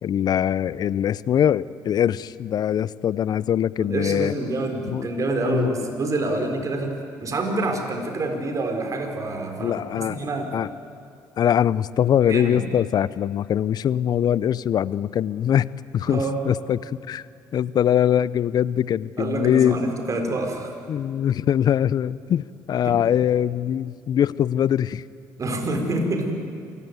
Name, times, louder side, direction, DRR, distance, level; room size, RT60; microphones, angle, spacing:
voice 1, 0.0-4.3 4.9-5.1 5.4-5.8 6.2-6.5 9.6-10.3 10.5-10.7 11.4-15.7 15.9-17.3 17.5-19.8 20.9-25.0, left 10 dB, 55° left, 20 dB, 0.6 m, -22 dB
voice 2, 3.8-10.5 12.3-12.6 16.1-16.4 19.2-20.7 22.8-23.0 25.4-26.3, right 2 dB, 40° right, 4 dB, 4.3 m, -27 dB
26.5 x 15.5 x 9.5 m, 2.3 s
supercardioid pair, 75°, 8 cm